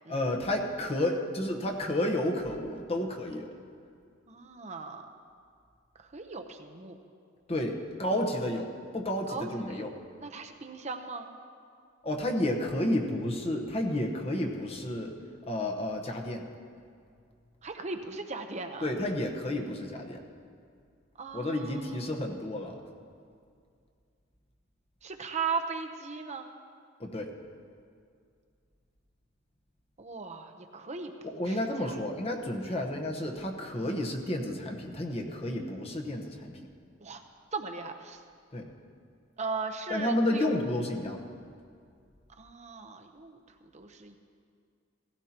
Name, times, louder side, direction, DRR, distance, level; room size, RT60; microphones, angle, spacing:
voice 1, 0.1-3.5 7.5-9.9 12.0-15.1 15.5-16.5 18.8-20.2 21.3-22.8 27.0-27.3 31.2-36.6 38.5-38.7 39.9-41.3, left 1 dB, 30° left, 2 dB, 1.1 m, -31 dB
voice 2, 4.3-5.1 6.1-7.0 9.3-9.8 10.2-11.3 17.6-18.9 21.2-22.0 25.0-26.5 30.0-31.9 32.6-32.7 37.0-37.2 37.5-38.2 39.4-40.5 42.4-43.4 43.7-44.2, right 4 dB, 35° right, 6 dB, 0.8 m, -38 dB
17.0 x 16.0 x 2.9 m, 2.2 s
head